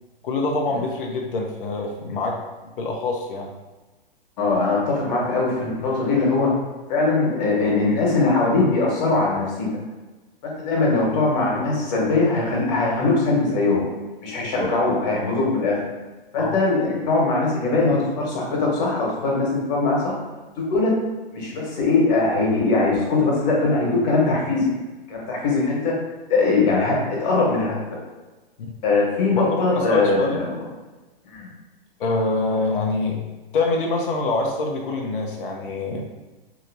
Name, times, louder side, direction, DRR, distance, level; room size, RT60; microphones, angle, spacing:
voice 1, 0.2-2.4 2.8-3.5 14.4-14.7 16.4-16.6 28.6-28.7 29.3-30.4 32.0-33.2 33.5-36.0, left 3 dB, 65° left, 1 dB, 0.7 m, -25 dB
voice 2, 4.4-6.5 6.9-9.7 10.4-13.8 14.2-15.8 16.3-20.1 20.5-20.9 21.3-24.7 25.1-26.0 26.3-27.8 28.8-30.5 31.3-31.5, left 3 dB, 45° left, -3 dB, 1.4 m, -21 dB
4.1 x 2.9 x 2.7 m, 1.2 s
figure-of-eight pair, 115°, 29 cm